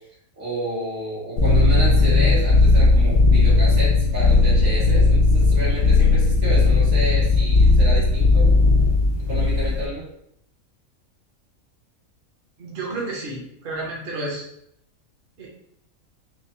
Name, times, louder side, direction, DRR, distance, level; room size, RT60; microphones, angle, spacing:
voice 1, 0.4-8.5 9.3-10.1, right 1 dB, 80° right, -7 dB, 2.0 m, -30 dB
sound 1, 1.4-9.9, left 3 dB, 85° left, 1.2 m, -16 dB
voice 2, 12.6-14.4 15.4-15.5, right 2 dB, 45° right, -3 dB, 1.0 m, -31 dB
5.2 x 2.1 x 3.1 m, 0.74 s
omnidirectional pair, 1.5 m